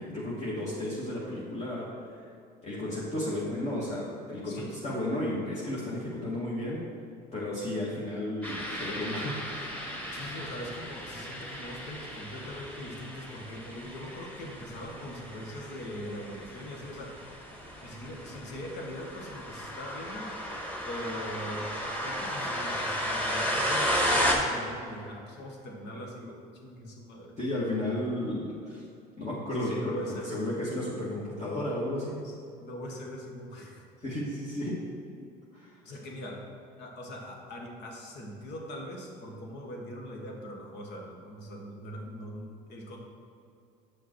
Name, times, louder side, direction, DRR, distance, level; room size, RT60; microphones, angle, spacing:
voice 1, 0.0-2.2 2.6-6.8 7.3-9.4 27.4-28.8 29.2-32.2 34.0-34.8 35.5-35.7, left 1 dB, 30° left, -8 dB, 1.9 m, -33 dB
sound 1, 8.4-24.3, equal, 5° left, 1.8 m, -34 dB
voice 2, 10.1-17.2 17.8-20.3 20.8-21.7 22.0-27.4 29.4-30.5 32.2-33.9 35.8-36.4 36.8-43.0, equal, 60° left, 1 dB, 1.7 m, -41 dB
8.0 x 5.9 x 4.6 m, 2.6 s
supercardioid pair, 80°, 20 cm